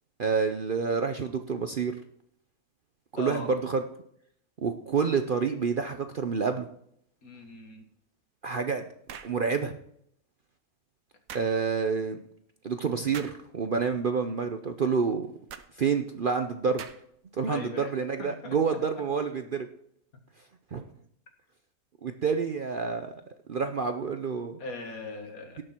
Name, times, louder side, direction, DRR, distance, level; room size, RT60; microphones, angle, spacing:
voice 1, 0.2-2.0 3.1-3.8 4.6-6.7 8.4-8.9 9.2-9.8 11.3-12.2 12.6-15.3 15.8-16.8 17.3-19.7 20.7-20.8 22.0-23.1 23.5-24.6, right 5 dB, 50° right, 7 dB, 0.7 m, -28 dB
voice 2, 3.2-3.5 7.2-7.8 17.5-17.9 18.2-18.6 24.6-25.6, left 3 dB, 70° left, 4 dB, 2.3 m, -39 dB
sound 1, 9.1-9.4 11.3-11.5 13.1-13.4 15.5-15.7 16.8-17.2, right 8 dB, 70° right, 1.2 m, -42 dB
17.5 x 6.6 x 4.4 m, 0.71 s
omnidirectional pair, 1.6 m